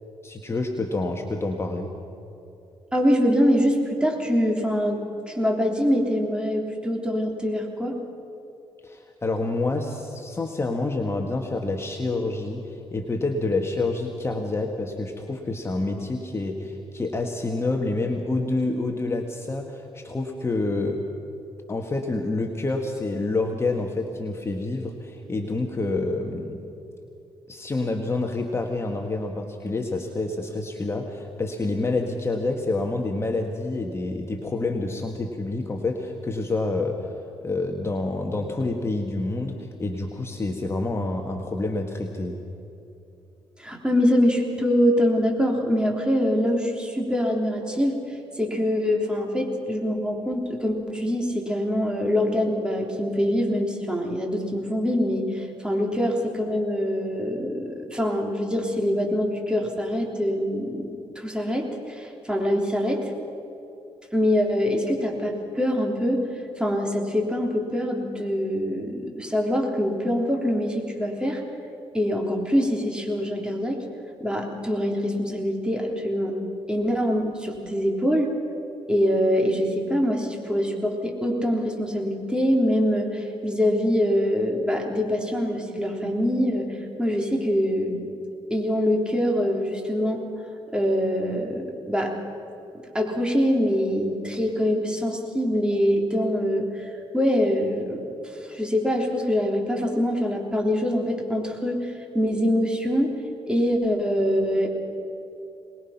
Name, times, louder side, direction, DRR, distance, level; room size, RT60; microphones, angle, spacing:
voice 1, 0.2-1.9 8.8-21.0 21.7-26.6 27.5-37.1 37.4-42.4, left 2 dB, 25° left, 2 dB, 1.7 m, -28 dB
voice 2, 2.9-8.0 43.6-48.0 48.4-63.1 64.1-66.2 66.6-71.4 71.9-73.8 74.2-76.4 76.7-78.3 78.9-88.1 88.5-90.2 90.7-92.2 92.9-96.9 97.1-98.1 98.5-103.1 103.5-104.7, equal, 10° right, 1 dB, 3.5 m, -24 dB
23.5 x 20.5 x 5.9 m, 2.8 s
cardioid pair, 90°, 11 cm